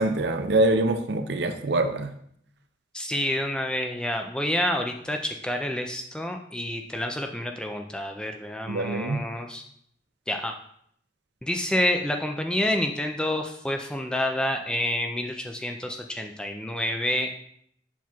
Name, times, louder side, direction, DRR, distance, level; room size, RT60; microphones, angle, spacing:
voice 1, 0.0-2.1 8.7-9.2, right 2 dB, 60° right, 8 dB, 0.5 m, -24 dB
voice 2, 2.9-9.6 10.3-10.5 11.4-17.4, left 1 dB, 5° left, 4 dB, 0.3 m, -28 dB
7.3 x 5.9 x 2.3 m, 0.68 s
head